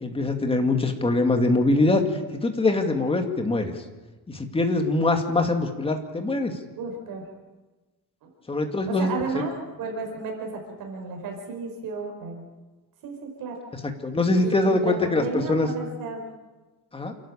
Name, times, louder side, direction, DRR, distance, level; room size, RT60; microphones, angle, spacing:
voice 1, 0.0-3.8 4.3-6.5 8.5-9.2 13.8-15.7 16.9-17.1, left 2 dB, 15° left, 5 dB, 2.3 m, -23 dB
voice 2, 6.7-7.2 8.2-8.3 8.9-9.5 9.8-12.5 13.0-13.6 14.4-16.2, right 4 dB, 65° right, 2 dB, 5.1 m, -33 dB
29.0 x 11.5 x 8.8 m, 1.2 s
cardioid pair, 145°, 37 cm